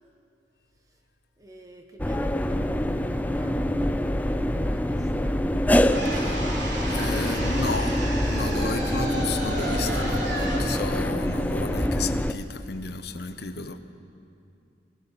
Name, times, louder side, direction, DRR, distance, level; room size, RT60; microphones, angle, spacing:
voice 1, 1.4-3.6 4.6-5.4 8.4-8.6, equal, 20° right, 4 dB, 1.4 m, -50 dB
sound 1, 2.0-12.3, equal, 10° left, 0.5 m, -25 dB
sound 2, 5.9-12.0, right 1 dB, 70° right, 3.4 m, -34 dB
voice 2, 6.9-13.8, left 3 dB, 55° left, 8 dB, 1.0 m, -33 dB
21.5 x 18.0 x 6.9 m, 2.5 s
head